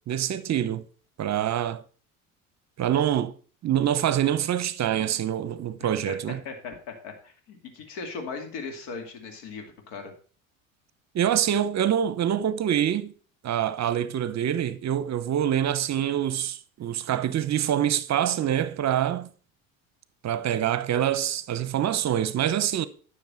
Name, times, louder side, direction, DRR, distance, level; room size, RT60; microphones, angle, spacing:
voice 1, 0.1-0.8 1.2-1.8 2.8-3.3 3.6-6.4 11.1-13.1 13.4-19.3 20.2-22.9, right 10 dB, 40° right, 0.8 m, -25 dB
voice 2, 5.8-6.2 6.4-10.1, left 4 dB, 70° left, 2.6 m, -38 dB
10.5 x 6.4 x 5.5 m
hypercardioid pair, 80°, 42 cm